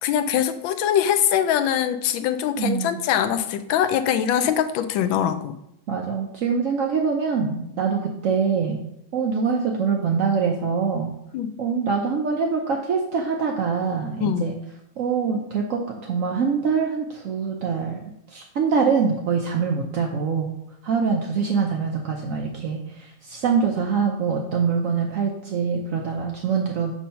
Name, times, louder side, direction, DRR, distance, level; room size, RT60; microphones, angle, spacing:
voice 1, 0.0-5.6 11.3-11.5 14.2-14.5, left 9 dB, 85° left, 10 dB, 1.3 m, -23 dB
voice 2, 2.6-3.0 5.9-8.8 9.1-11.1 11.6-14.6 15.0-18.0 18.3-20.6 20.8-26.9, right 5 dB, 70° right, 1 dB, 0.7 m, -24 dB
7.3 x 2.7 x 5.6 m, 0.79 s
omnidirectional pair, 2.1 m